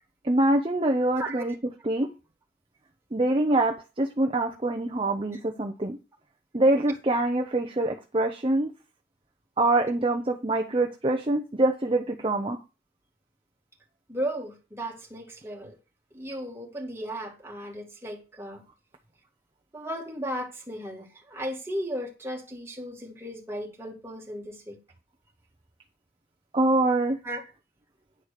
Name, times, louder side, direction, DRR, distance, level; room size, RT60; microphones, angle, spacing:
voice 1, 0.2-1.5 1.8-2.1 3.1-6.0 6.5-8.7 9.6-12.6 26.5-27.2, right 2 dB, 30° right, 0.7 m, -24 dB
voice 2, 14.1-15.7 16.1-18.6 19.7-24.8 27.2-27.4, equal, 15° right, 2.2 m, -35 dB
10.0 x 4.7 x 6.6 m
head